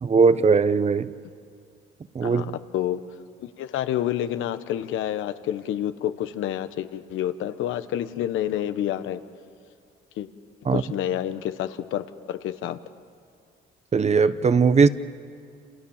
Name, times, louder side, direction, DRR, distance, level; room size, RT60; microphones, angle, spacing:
voice 1, 0.0-1.1 2.1-2.4 10.7-10.8 13.9-14.9, right 5 dB, 35° right, 1.0 m, -19 dB
voice 2, 2.2-3.0 3.4-9.2 10.2-10.3 10.7-12.8, left 11 dB, 90° left, 1.2 m, -29 dB
28.5 x 27.5 x 7.3 m
cardioid pair, 90°, 20 cm